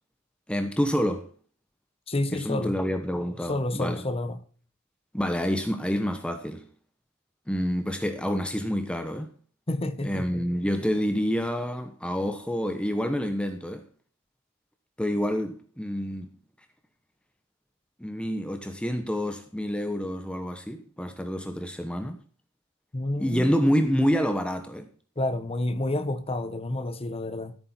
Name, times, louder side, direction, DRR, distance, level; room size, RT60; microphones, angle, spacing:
voice 1, 0.5-1.3 2.3-4.0 5.1-6.7 7.5-9.3 10.0-13.8 15.0-16.3 18.0-22.2 23.2-24.9, equal, 5° left, 1.0 m, -28 dB
voice 2, 2.1-2.8 3.5-4.4 9.7-10.5 22.9-23.5 25.2-27.6, left 1 dB, 30° left, 1.2 m, -29 dB
14.5 x 8.7 x 4.4 m
head